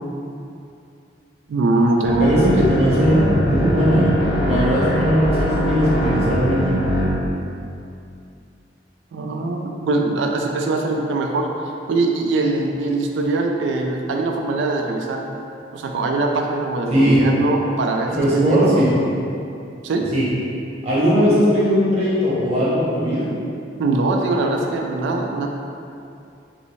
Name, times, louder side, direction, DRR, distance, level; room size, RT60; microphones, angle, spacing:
voice 1, 1.5-2.4 9.1-11.5 11.9-15.2 15.7-18.9 19.8-20.1 23.8-25.5, right 2 dB, 80° right, 2 dB, 0.3 m, -22 dB
sound 1, 2.0-7.1, equal, 25° left, 0.6 m, -21 dB
voice 2, 2.2-4.1 4.4-6.9 16.9-17.2 18.2-18.9 20.1-20.2 20.8-23.2, equal, 35° right, -8 dB, 0.9 m, -18 dB
3.1 x 2.6 x 3.0 m, 2.6 s
head